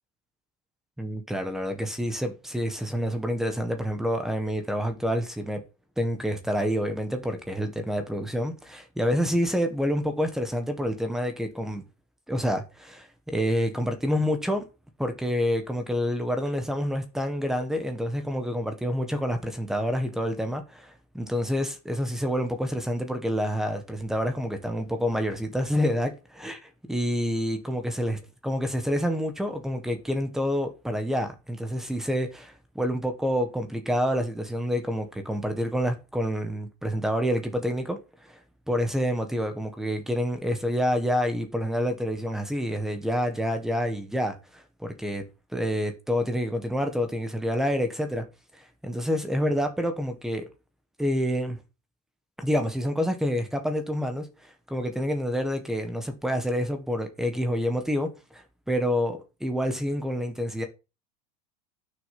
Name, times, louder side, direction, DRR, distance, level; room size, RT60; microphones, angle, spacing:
voice 1, 1.0-5.6 6.0-11.8 12.3-14.6 15.0-26.6 26.9-28.2 28.4-38.0 38.3-38.4 38.7-44.3 44.8-45.2 45.5-48.2 48.8-50.5 51.0-51.6 52.4-54.3 54.7-58.4 58.7-60.6, equal, ahead, 1.5 m, -28 dB
11.0 x 6.6 x 6.0 m
supercardioid pair, 170°, 20 cm